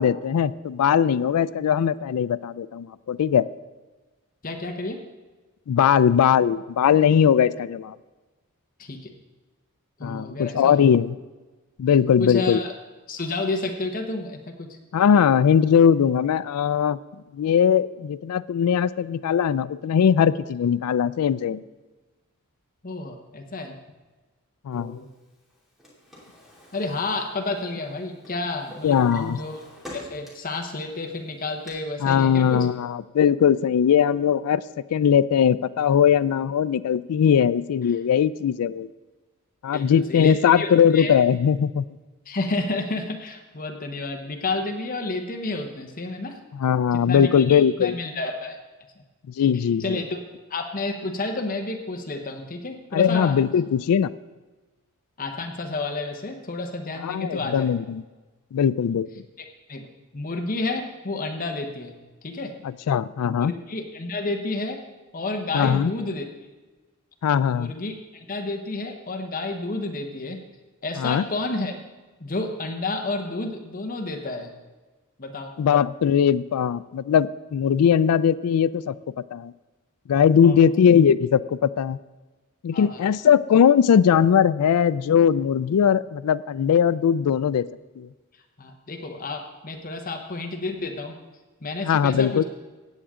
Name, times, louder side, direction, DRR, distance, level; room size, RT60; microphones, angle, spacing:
voice 1, 0.0-3.5 5.7-8.0 10.0-11.2 11.8-12.6 14.9-17.0 17.3-21.6 24.7-25.0 28.8-29.4 32.0-34.6 34.9-38.9 39.6-41.9 46.6-47.9 49.4-50.0 52.9-54.1 57.0-58.0 58.5-59.1 62.9-63.5 65.5-65.9 67.2-67.7 71.0-71.2 75.6-79.0 79.3-79.5 80.1-82.0 82.6-87.7 88.0-88.1 91.8-92.4, left 8 dB, 90° left, 17 dB, 0.3 m, -20 dB
voice 2, 4.4-5.0 8.8-9.1 10.0-10.7 12.2-12.7 13.1-14.8 22.8-23.8 24.7-25.1 26.7-29.6 29.9-32.7 39.7-41.1 42.3-46.4 46.9-48.6 49.5-50.2 50.5-53.4 55.2-57.7 59.4-59.9 60.1-61.9 62.2-62.5 63.2-64.8 65.1-66.2 67.5-70.4 70.8-71.8 72.2-74.5 75.2-75.5 80.4-80.6 82.7-83.1 88.6-91.1 91.6-92.4, left 2 dB, 40° left, 5 dB, 1.0 m, -30 dB
Drawer open or close, 25.5-27.9 28.2-30.6 31.0-31.7, equal, ahead, 2.8 m, -44 dB
16.0 x 8.8 x 3.7 m, 1.2 s
head